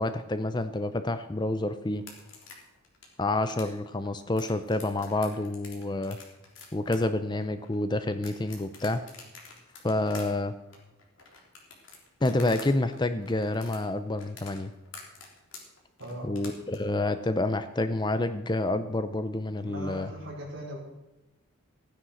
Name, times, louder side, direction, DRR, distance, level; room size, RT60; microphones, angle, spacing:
voice 1, 0.0-2.0 3.2-6.2 6.7-9.0 9.8-10.5 12.2-14.7 16.2-20.1, left 2 dB, 20° left, 10 dB, 0.5 m, -28 dB
sound 1, 2.0-12.7 12.9-16.8, left 4 dB, 55° left, 3.5 m, -47 dB
voice 2, 16.0-16.3 19.6-20.8, equal, 55° right, -2 dB, 4.6 m, -39 dB
15.5 x 9.8 x 6.4 m, 1.0 s
head